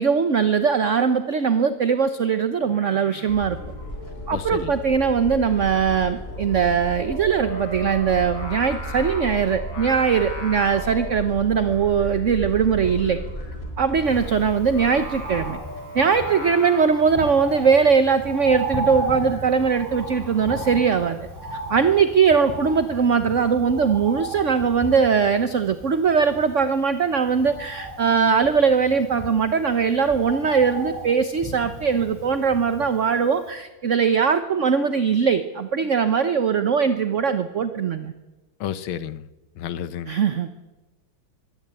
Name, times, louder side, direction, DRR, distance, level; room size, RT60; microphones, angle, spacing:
voice 1, 0.0-3.6 4.3-13.2 13.8-15.6 15.9-21.2 21.5-38.1 40.1-40.6, right 6 dB, 45° right, 10 dB, 1.2 m, -21 dB
Singing, 2.6-21.1, left 1 dB, 70° left, 5.5 m, -40 dB
sound 1, 3.3-15.5, equal, 30° left, 3.5 m, -35 dB
voice 2, 4.3-4.8 38.6-39.3 39.6-40.1, left 10 dB, 90° left, 15 dB, 1.7 m, -31 dB
Bird, 14.0-33.1 33.5-33.6, right 1 dB, 10° right, 6.3 m, -35 dB
24.0 x 17.0 x 8.9 m, 1.1 s
omnidirectional pair, 2.2 m